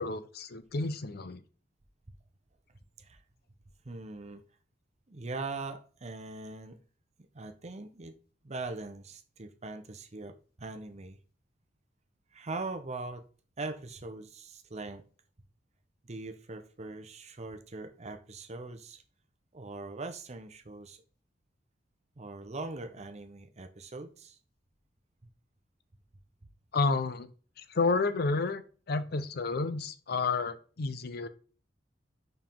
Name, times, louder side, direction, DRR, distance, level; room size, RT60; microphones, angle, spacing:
voice 1, 0.0-1.4 26.7-27.3 27.6-28.6 28.9-31.3, left 3 dB, 60° left, 0.6 m, -30 dB
voice 2, 3.8-4.4 5.1-6.8 7.3-8.2 8.4-11.2 12.3-13.2 13.6-15.0 16.0-19.0 19.5-21.0 22.2-24.4 26.4-26.5, right 3 dB, 35° right, 0.8 m, -41 dB
5.4 x 4.7 x 3.7 m
head